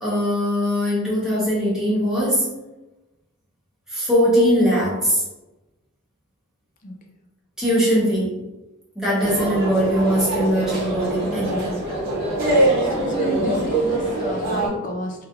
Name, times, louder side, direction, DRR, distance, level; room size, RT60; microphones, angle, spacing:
voice 1, 0.0-2.4 3.9-5.2 7.6-8.3 8.9-11.8, equal, 5° right, -8 dB, 1.2 m, -21 dB
sound 1, 9.2-14.7, right 2 dB, 50° right, 1.0 m, -23 dB
voice 2, 12.6-15.3, left 1 dB, 40° left, 1 dB, 0.5 m, -31 dB
3.2 x 2.7 x 2.4 m, 1.0 s
head